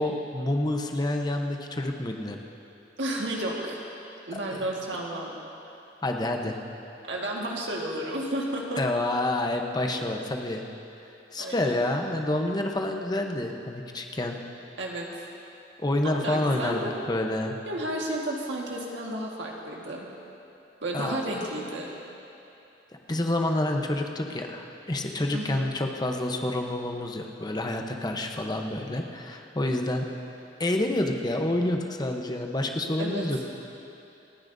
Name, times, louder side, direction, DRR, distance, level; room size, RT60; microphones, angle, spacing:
voice 1, 0.0-2.4 4.5-4.6 6.0-6.6 8.8-10.6 11.3-14.4 15.8-17.6 20.9-21.2 23.1-30.1 30.6-33.5, left 1 dB, 25° left, 3 dB, 0.9 m, -28 dB
voice 2, 3.0-3.8 4.3-5.3 7.1-8.8 11.4-11.7 14.8-15.1 16.0-16.9 17.6-20.1 20.8-21.9 25.3-25.7 33.0-33.2, right 1 dB, 85° right, -2 dB, 1.7 m, -32 dB
28.5 x 9.7 x 2.7 m, 2.8 s
head